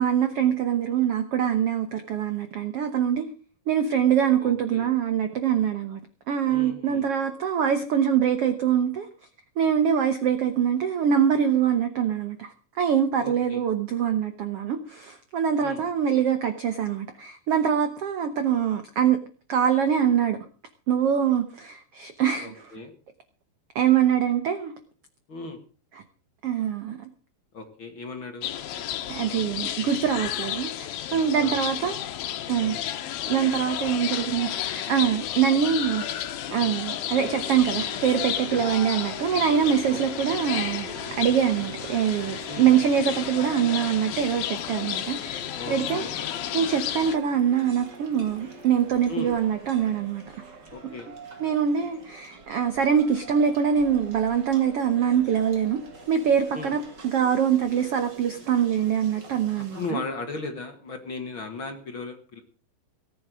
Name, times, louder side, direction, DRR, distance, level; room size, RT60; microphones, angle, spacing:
voice 1, 0.0-3.3 3.7-6.0 6.3-9.1 9.6-12.5 12.8-19.2 19.5-20.4 20.9-22.7 23.7-24.7 26.4-27.0 29.1-32.0 32.5-32.7 33.3-45.4 45.7-46.0 46.5-50.2 51.4-55.8 56.1-60.0, right 8 dB, 75° right, 8 dB, 1.3 m, -24 dB
voice 2, 4.4-4.9 6.5-7.1 13.2-13.6 15.6-15.8 22.4-22.9 25.3-25.6 27.5-28.5 31.1-31.5 32.6-32.8 38.5-38.6 39.9-40.2 42.5-42.7 45.6-46.2 49.1-49.4 50.7-51.1 56.5-56.7 59.5-62.4, left 3 dB, 40° left, 5 dB, 2.1 m, -37 dB
sound 1, 28.4-47.2, left 11 dB, 75° left, 2.9 m, -32 dB
sound 2, 37.1-43.3, right 6 dB, 50° right, 3.7 m, -42 dB
sound 3, 40.5-59.9, right 4 dB, 30° right, 2.6 m, -46 dB
18.0 x 8.8 x 6.2 m, 0.41 s
omnidirectional pair, 4.3 m